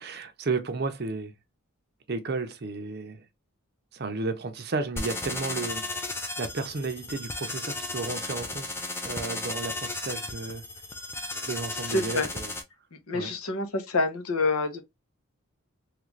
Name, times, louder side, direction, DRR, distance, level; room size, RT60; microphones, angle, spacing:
voice 1, 0.0-1.3 2.1-3.2 3.9-8.8 9.0-10.6 11.5-12.5 13.1-13.3, right 3 dB, 45° right, 0.5 m, -33 dB
sound 1, 5.0-12.6, left 2 dB, 10° left, 0.3 m, -34 dB
voice 2, 11.8-12.3 13.1-14.8, left 2 dB, 85° left, 0.8 m, -27 dB
3.2 x 2.5 x 3.1 m
head